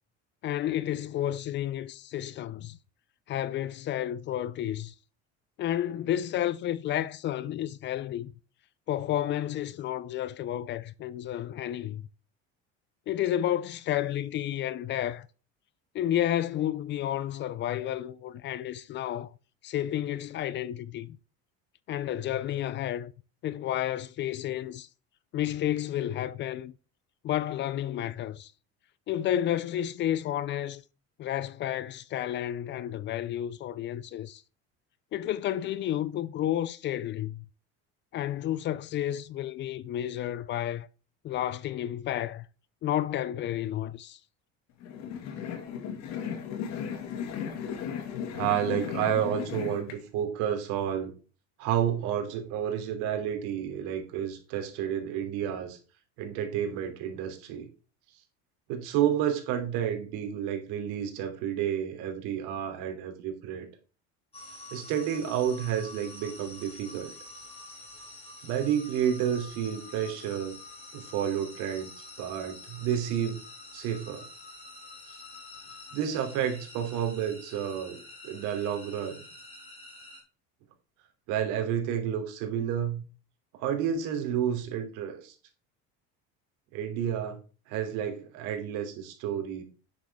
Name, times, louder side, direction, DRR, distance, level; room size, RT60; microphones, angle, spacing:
voice 1, 0.4-2.8 3.3-4.9 5.6-8.3 8.9-12.0 13.1-15.3 15.9-19.3 19.6-21.2 21.9-23.1 23.4-24.9 25.3-26.7 27.2-28.5 29.1-30.8 31.2-34.4 35.1-37.4 38.1-40.9 41.2-42.5 42.8-44.2, left 12 dB, 35° left, 0.4 m, -31 dB
sound 1, 44.8-50.0, left 7 dB, 60° left, 2.2 m, -35 dB
voice 2, 48.3-51.1 51.6-55.8 56.2-57.7 58.7-63.7 64.7-67.1 68.4-70.6 70.9-71.9 72.2-73.4 73.7-74.3 75.9-79.2 81.3-83.0 83.5-85.3 86.7-87.4 87.7-89.6, right 9 dB, 70° right, 3.1 m, -30 dB
sound 2, 64.3-80.2, left 2 dB, 20° left, 4.4 m, -47 dB
11.0 x 7.6 x 3.6 m
cardioid pair, 155°, 31 cm